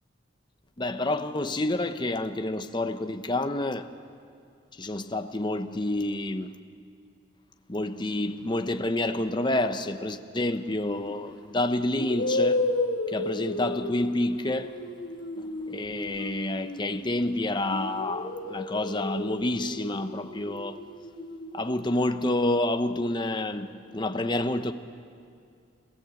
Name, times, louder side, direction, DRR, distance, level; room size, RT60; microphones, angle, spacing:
voice 1, 0.8-3.9 4.7-6.5 7.7-12.6 13.1-14.7 15.4-20.8 21.5-24.7, left 1 dB, 25° left, 0.8 m, -28 dB
sound 1, 10.9-11.1 11.9-17.3 17.7-21.6, left 2 dB, 70° left, 2.2 m, -33 dB
29.5 x 16.5 x 7.8 m
head